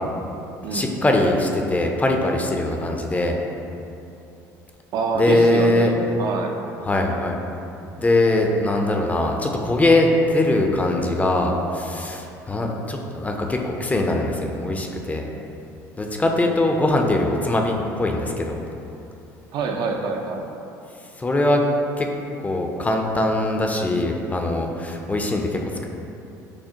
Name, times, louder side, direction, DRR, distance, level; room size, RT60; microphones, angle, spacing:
voice 1, 0.7-3.4 5.1-5.9 6.8-7.4 8.0-15.3 16.0-18.6 21.2-21.6 22.0-22.1 22.4-25.6, left 2 dB, 15° left, 2 dB, 0.4 m, -21 dB
voice 2, 4.9-6.5 19.5-20.5, right 4 dB, 60° right, 2 dB, 0.4 m, -25 dB
5.9 x 2.0 x 2.8 m, 2.8 s
supercardioid pair, 75°, 8 cm